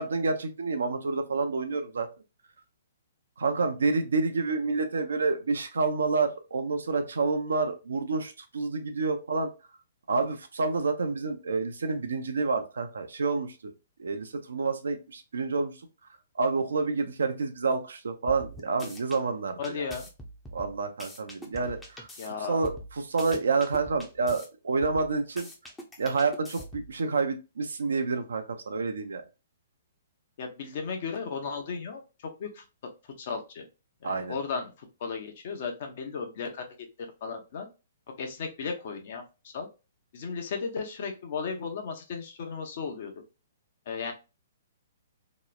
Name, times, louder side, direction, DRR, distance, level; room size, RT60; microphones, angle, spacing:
voice 1, 0.0-2.1 3.4-9.5 10.1-13.7 14.0-15.7 16.4-19.9 20.5-22.1 22.5-25.5 26.0-29.2 34.0-34.3, right 4 dB, 85° right, 7 dB, 0.5 m, -28 dB
sound 1, 18.3-19.2 19.6-22.3 22.6-24.5 24.8-27.0, equal, 10° left, 0.6 m, -44 dB
voice 2, 19.6-20.0 22.2-22.6 30.4-32.0 32.4-32.6 33.2-33.6 34.0-36.7 37.2-37.7 38.2-39.7 40.1-43.1 43.9-44.1, left 5 dB, 55° left, 4 dB, 0.7 m, -35 dB
2.9 x 2.0 x 2.3 m, 0.28 s
hypercardioid pair, 140°, 0 cm